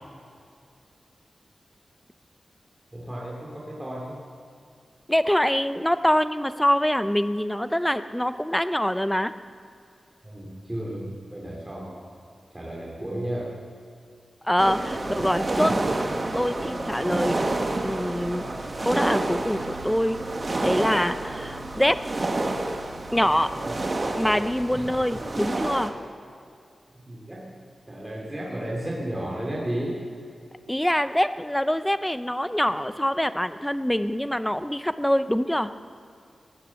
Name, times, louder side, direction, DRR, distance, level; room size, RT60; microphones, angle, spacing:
voice 1, 2.9-4.2 10.2-12.0 12.5-13.5 14.9-15.1 23.6-23.7 24.7-24.9 27.1-30.0, right 1 dB, 15° right, -5 dB, 2.6 m, -33 dB
voice 2, 5.1-9.3 14.4-15.7 16.3-17.4 17.8-18.4 18.8-20.2 20.6-22.0 23.1-23.5 24.1-25.9 30.7-35.7, equal, 5° left, 12 dB, 0.6 m, -24 dB
sound 1, 14.6-25.9, right 2 dB, 35° right, 1.3 m, -29 dB
18.5 x 9.9 x 7.1 m, 2.4 s
wide cardioid pair, 105°, 0 cm